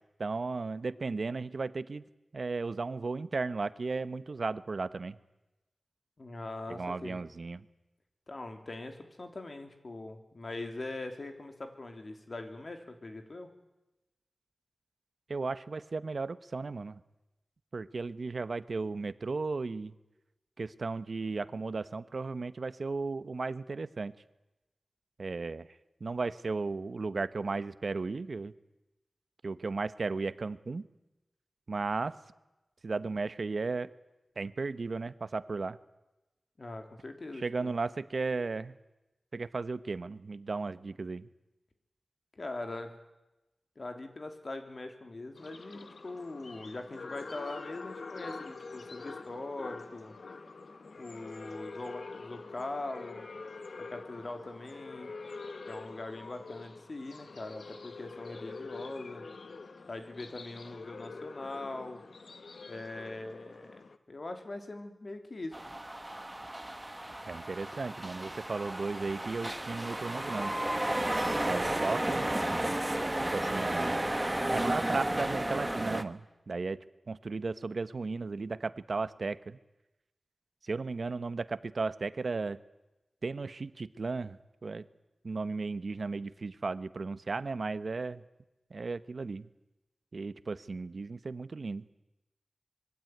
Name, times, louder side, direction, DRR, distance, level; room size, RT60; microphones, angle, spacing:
voice 1, 0.2-2.0 2.3-5.2 6.7-7.6 15.3-17.0 17.7-19.9 20.6-24.1 25.2-25.7 26.0-28.5 29.4-30.9 31.7-32.1 32.8-33.9 34.4-35.8 37.4-38.7 39.3-41.3 67.3-70.6 71.4-72.3 73.3-74.0 74.5-79.6 80.6-82.6 83.2-84.9 85.2-88.2 88.7-89.5 90.1-91.9, right 3 dB, 55° right, 14 dB, 1.0 m, -35 dB
voice 2, 6.2-7.2 8.3-13.5 36.6-37.7 42.3-42.9 43.7-50.2 50.9-53.3 53.9-55.1 55.7-59.3 59.8-62.0 62.7-65.6, left 2 dB, 45° left, 6 dB, 3.3 m, -42 dB
sound 1, 45.4-64.0, left 4 dB, 65° left, 1.4 m, -46 dB
sound 2, 65.5-76.0, right 1 dB, 15° right, 1.3 m, -33 dB
25.5 x 22.0 x 9.2 m, 1.0 s
wide cardioid pair, 110°, 0 cm